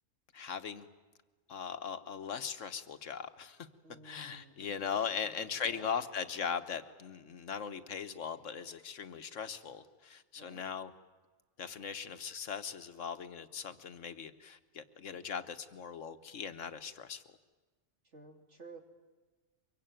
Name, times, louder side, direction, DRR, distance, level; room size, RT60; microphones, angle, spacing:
voice 1, 0.3-0.9 1.5-3.7 4.0-10.9 11.6-17.2, left 7 dB, 85° left, 10 dB, 1.5 m, -39 dB
voice 2, 3.8-5.0 5.6-5.9 10.4-10.6 18.1-18.8, right 3 dB, 70° right, 3 dB, 3.2 m, -53 dB
24.0 x 23.5 x 9.1 m, 1.3 s
omnidirectional pair, 1.3 m